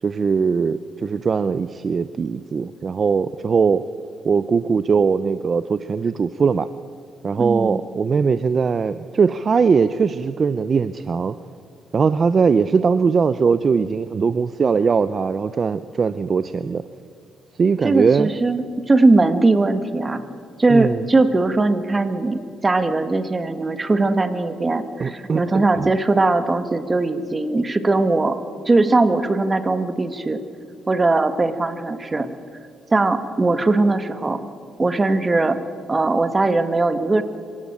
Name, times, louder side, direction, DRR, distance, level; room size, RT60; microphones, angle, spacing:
voice 1, 0.0-3.9 4.2-6.7 7.2-11.4 11.9-16.8 17.6-18.3 20.7-21.0 25.0-26.0, right 5 dB, 40° right, 13 dB, 0.6 m, -20 dB
voice 2, 7.4-7.8 17.8-20.2 20.6-28.4 28.6-30.4 30.9-32.3 32.9-34.4 34.8-35.6 35.9-37.2, right 2 dB, 25° right, 10 dB, 1.5 m, -19 dB
25.0 x 16.5 x 8.8 m, 2.2 s
cardioid pair, 90°, 0 cm